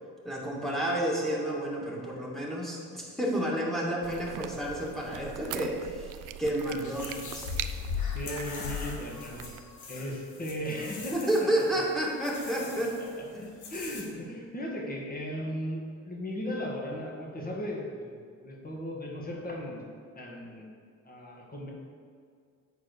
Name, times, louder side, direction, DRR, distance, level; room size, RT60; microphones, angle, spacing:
voice 1, 0.2-7.5 11.1-13.0 13.3-13.5, right 1 dB, ahead, -3 dB, 2.2 m, -30 dB
sound 1, 4.0-9.6, right 11 dB, 85° right, 0.5 m, -42 dB
sound 2, 6.8-14.0, left 6 dB, 75° left, 1.5 m, -39 dB
voice 2, 8.1-9.4 9.9-11.5 13.2-13.3 13.7-20.7 21.0-21.7, equal, 30° left, -2 dB, 2.1 m, -37 dB
8.2 x 4.5 x 6.6 m, 2.1 s
cardioid pair, 90°, 30 cm